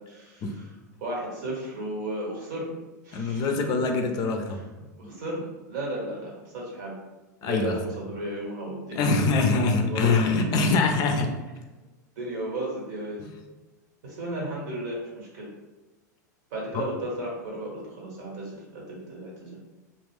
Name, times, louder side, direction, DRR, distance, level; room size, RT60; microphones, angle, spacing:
voice 1, 0.1-0.7 1.0-2.7 3.0-3.5 4.5-7.0 7.4-9.1 9.9-10.5 12.2-13.2 14.0-15.5 16.5-19.6, right 1 dB, 65° right, -3 dB, 1.1 m, -34 dB
voice 2, 3.1-4.6 5.0-5.1 7.4-7.8 8.9-11.3 16.7-16.8, left 3 dB, 40° left, 4 dB, 0.4 m, -24 dB
2.4 x 2.1 x 3.3 m, 1.1 s
hypercardioid pair, 95°, 10 cm